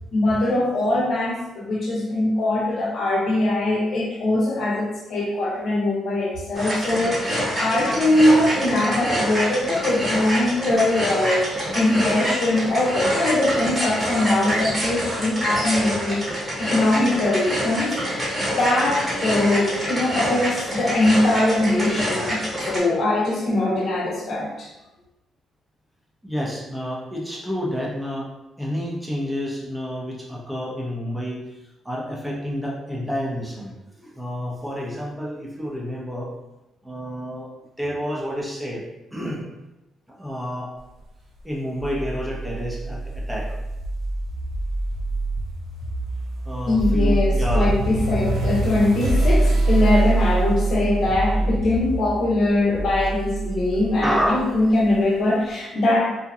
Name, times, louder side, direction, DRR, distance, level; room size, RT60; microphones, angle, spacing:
voice 1, 0.1-24.7 46.7-56.1, left 1 dB, 60° left, -2 dB, 0.7 m, -22 dB
sound 1, 6.5-22.8, equal, 25° right, 1.0 m, -26 dB
voice 2, 26.2-28.3 28.6-31.6 31.8-36.3 36.8-37.5 37.8-38.8 39.1-39.4 40.1-40.7 41.4-43.5 46.4-47.8 54.0-54.6, equal, 10° right, -4 dB, 0.6 m, -29 dB
sound 2, 41.8-55.0, right 2 dB, 75° right, 0.5 m, -24 dB
2.7 x 2.1 x 2.5 m, 0.99 s
cardioid pair, 90°, 0 cm